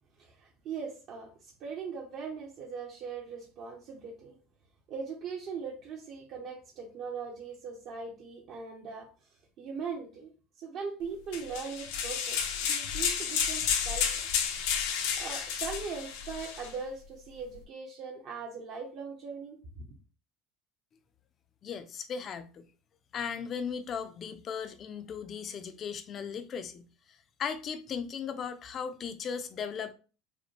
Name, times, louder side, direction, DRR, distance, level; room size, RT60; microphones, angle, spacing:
voice 1, 0.2-4.3 4.9-9.1 9.6-10.3 10.6-14.2 15.2-19.8, right 5 dB, 50° right, 0.8 m, -40 dB
sound 1, 11.3-16.7, left 7 dB, 80° left, 0.8 m, -31 dB
voice 2, 21.6-22.7 23.1-29.9, left 6 dB, 35° left, 0.5 m, -37 dB
5.0 x 2.2 x 3.1 m
cardioid pair, 145°, 0 cm